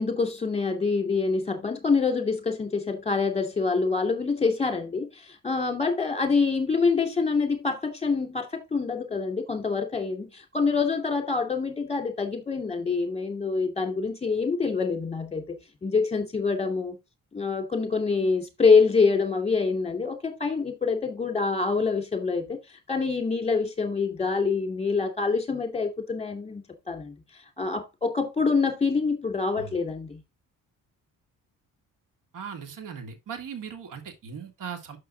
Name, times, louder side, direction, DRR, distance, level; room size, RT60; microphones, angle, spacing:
voice 1, 0.0-17.0 17.3-22.6 22.9-27.2 27.6-30.2, left 4 dB, 20° left, 2.7 m, -26 dB
voice 2, 32.3-35.0, right 7 dB, 65° right, 2.1 m, -38 dB
6.4 x 6.0 x 4.1 m
cardioid pair, 85°, 34 cm